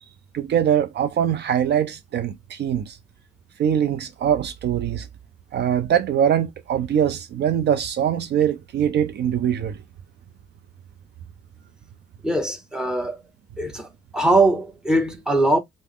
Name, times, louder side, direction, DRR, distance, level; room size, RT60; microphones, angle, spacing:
voice 1, 0.3-3.0 3.6-5.1 5.5-9.8, right 9 dB, 60° right, 0.5 m, -22 dB
voice 2, 12.2-13.2 13.6-15.6, right 2 dB, 5° right, 0.9 m, -21 dB
3.3 x 2.0 x 3.5 m
cardioid pair, 90°, 20 cm